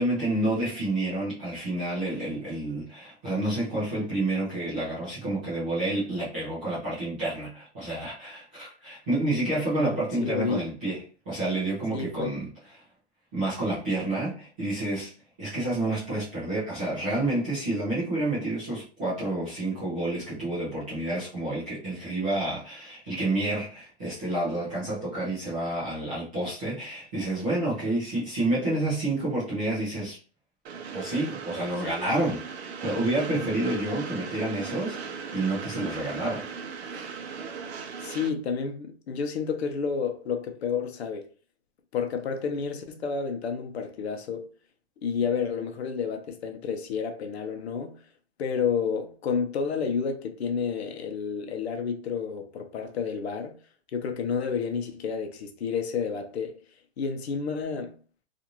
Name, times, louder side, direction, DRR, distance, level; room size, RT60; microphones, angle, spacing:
voice 1, 0.0-12.5 12.8-12.9 13.3-15.1 15.4-30.2 30.9-36.5 36.9-37.1, right 2 dB, 10° right, 0.3 m, -29 dB
voice 2, 9.8-10.6 11.9-12.3 38.0-41.3 41.9-44.5 45.0-48.0 48.4-53.6 53.9-56.6 57.0-58.0, left 6 dB, 75° left, 0.8 m, -30 dB
Train, 30.7-38.3, right 5 dB, 80° right, 0.7 m, -37 dB
2.5 x 2.5 x 2.9 m
hypercardioid pair, 160°, 32 cm